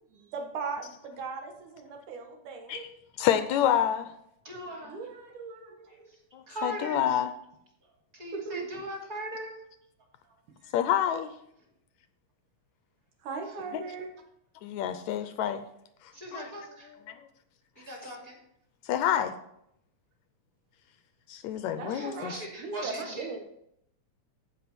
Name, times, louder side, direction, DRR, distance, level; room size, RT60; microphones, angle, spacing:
voice 1, 0.1-2.9 4.8-6.1 8.3-8.7 13.2-14.1 21.7-23.4, right 4 dB, 85° right, 3 dB, 3.0 m, -38 dB
voice 2, 3.2-4.1 6.3-7.3 10.7-11.3 13.7-13.8 14.6-15.6 16.3-16.5 18.9-19.4 21.3-22.3, left 10 dB, 80° left, 10 dB, 1.8 m, -27 dB
voice 3, 4.4-5.0 5.9-6.0 6.5-7.0 8.1-9.5 10.6-10.7 16.1-16.9 17.8-18.4 21.9-23.4, right 1 dB, 30° right, -1 dB, 2.8 m, -40 dB
14.5 x 5.7 x 4.3 m, 0.74 s
omnidirectional pair, 3.5 m